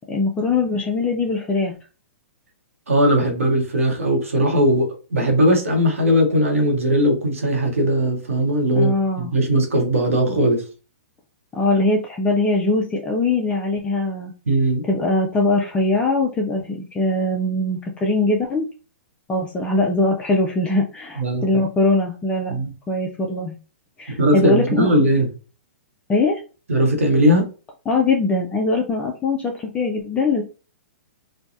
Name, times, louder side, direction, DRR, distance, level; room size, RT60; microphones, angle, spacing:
voice 1, 0.1-1.8 8.7-9.3 11.5-14.3 14.9-18.7 19.3-23.6 24.0-24.9 26.1-26.4 27.9-30.4, left 2 dB, 15° left, 0 dB, 0.4 m, -21 dB
voice 2, 2.9-10.6 14.5-14.8 21.2-21.5 22.5-22.7 24.2-25.3 26.7-27.5, equal, 85° right, 2 dB, 1.0 m, -19 dB
3.1 x 2.2 x 2.6 m, 0.34 s
hypercardioid pair, 125°, 7 cm